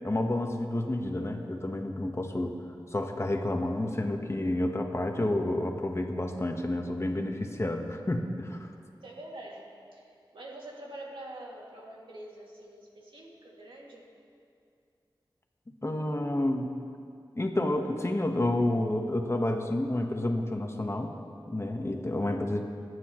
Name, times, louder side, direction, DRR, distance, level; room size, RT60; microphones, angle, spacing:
voice 1, 0.0-2.6 2.9-8.7 15.8-16.7 17.3-21.1 21.5-22.6, left 1 dB, 35° left, 3 dB, 1.3 m, -30 dB
voice 2, 9.0-14.1, right 1 dB, 80° right, -3 dB, 2.5 m, -45 dB
27.0 x 9.6 x 3.1 m, 2.4 s
cardioid pair, 45°, 8 cm